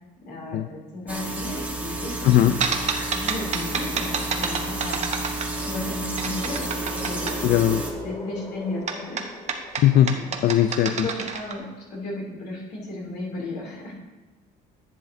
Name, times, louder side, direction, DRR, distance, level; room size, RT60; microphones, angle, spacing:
voice 1, 0.2-2.6 3.1-7.7 8.0-9.2 10.0-10.4 10.8-13.9, left 2 dB, 75° left, -3 dB, 2.9 m, -35 dB
sound 1, 1.1-7.9, right 2 dB, 10° right, 1.2 m, -31 dB
voice 2, 2.2-2.6 7.4-7.8 9.8-10.1 10.4-11.1, left 12 dB, 60° left, 9 dB, 0.4 m, -18 dB
sound 2, 2.6-5.8 6.2-7.4 8.9-11.5, right 5 dB, 45° right, 0.9 m, -29 dB
sound 3, 2.7-3.7 4.2-4.3 5.6-10.4, left 2 dB, 40° left, 1.8 m, -40 dB
10.5 x 7.9 x 2.7 m, 1.2 s
cardioid pair, 110°, 17 cm